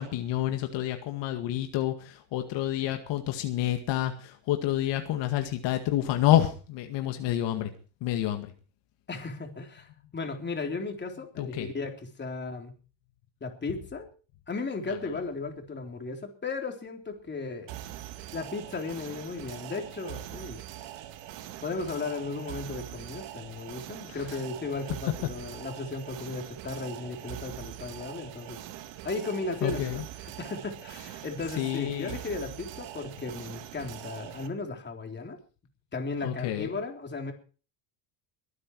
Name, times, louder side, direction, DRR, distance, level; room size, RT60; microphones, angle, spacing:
voice 1, 0.0-7.7 8.0-8.5 11.4-11.7 24.1-24.4 29.6-30.0 31.6-32.2 36.2-36.7, left 13 dB, 70° left, 6 dB, 2.1 m, -28 dB
voice 2, 9.1-12.7 13.4-14.1 14.5-17.8 18.3-20.6 21.6-28.6 29.0-35.4 35.9-37.3, left 3 dB, 25° left, 3 dB, 3.7 m, -35 dB
sound 1, 17.7-34.5, right 13 dB, 70° right, 2.1 m, -42 dB
22.5 x 9.6 x 4.8 m, 0.38 s
cardioid pair, 115°, 45 cm